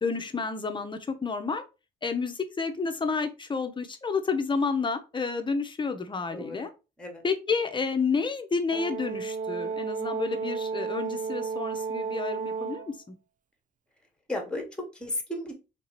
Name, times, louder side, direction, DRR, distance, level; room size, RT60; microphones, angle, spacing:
voice 1, 0.0-1.6 2.0-6.7 7.2-13.1, left 4 dB, 25° left, 7 dB, 0.6 m, -30 dB
Brass instrument, 8.7-12.9, right 4 dB, 40° right, 0.5 m, -32 dB
voice 2, 14.3-15.5, left 1 dB, 5° left, 3 dB, 1.0 m, -34 dB
3.3 x 2.7 x 3.0 m, 0.29 s
cardioid pair, 90°, 20 cm